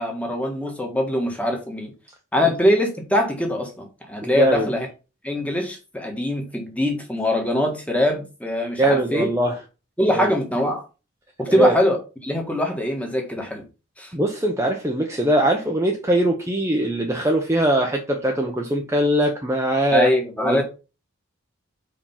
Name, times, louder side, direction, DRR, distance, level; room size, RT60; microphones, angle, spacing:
voice 1, 0.0-1.9 2.3-4.9 5.2-9.3 10.0-10.8 11.4-12.0 12.2-13.6 14.0-14.1 19.9-20.6, left 1 dB, 5° left, 1.5 m, -23 dB
voice 2, 4.2-4.7 8.8-9.5 10.1-10.3 11.5-11.7 14.1-20.1 20.4-20.6, right 1 dB, 15° right, 0.8 m, -21 dB
5.1 x 5.0 x 5.7 m
head